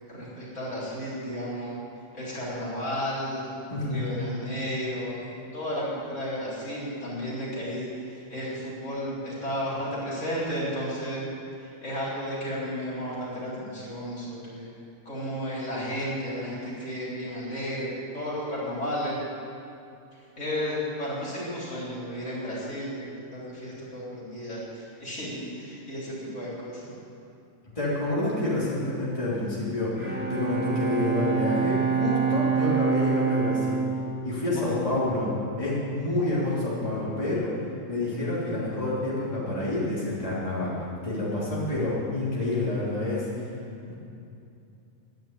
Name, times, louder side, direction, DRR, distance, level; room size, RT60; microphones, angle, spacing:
voice 1, 0.1-1.8 2.1-3.5 3.8-11.2 11.6-14.7 15.0-19.2 20.1-26.9 34.6-35.1, equal, 70° left, -7 dB, 4.5 m, -33 dB
voice 2, 3.7-4.0 27.7-33.8 34.2-35.3 35.6-37.5 37.9-40.7 41.0-43.5 43.9-44.0, left 2 dB, 25° left, -8 dB, 3.4 m, -28 dB
Bowed string instrument, 29.9-35.5, right 6 dB, 10° right, 1.8 m, -27 dB
12.0 x 9.6 x 8.6 m, 2.6 s
omnidirectional pair, 1.3 m